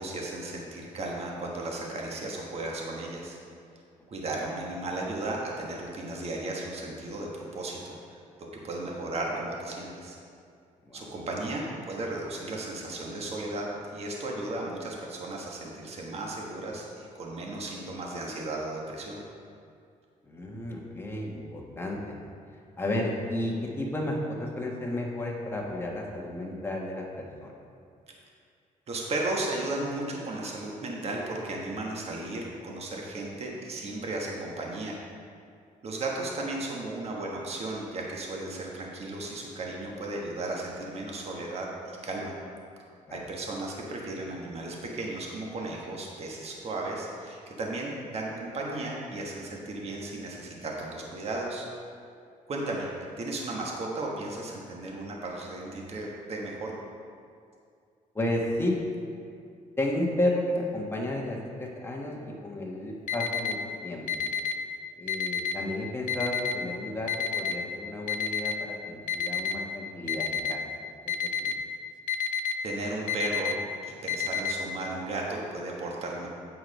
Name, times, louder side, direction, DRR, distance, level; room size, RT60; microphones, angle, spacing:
voice 1, 0.0-3.4 4.1-8.2 8.6-10.2 10.9-19.2 28.9-35.0 35.8-42.3 43.1-51.7 52.5-52.9 53.2-56.8 72.6-73.5 73.8-76.3, right 2 dB, 45° right, -2 dB, 1.3 m, -35 dB
voice 2, 20.3-22.2 22.8-27.5 43.1-43.2 58.1-58.8 59.8-64.1 65.0-70.9 71.2-71.5, left 1 dB, 15° left, -2 dB, 1.3 m, -32 dB
Alarm, 63.1-63.5 64.1-64.5 65.1-65.5 66.1-66.5 67.1-67.5 68.1-68.5 69.1-69.5 70.1-70.5 71.1-71.5 72.1-72.5 73.1-73.5 74.1-74.5, left 9 dB, 65° left, 0.5 m, -28 dB
8.5 x 4.7 x 5.3 m, 2.4 s
cardioid pair, 110°, 14 cm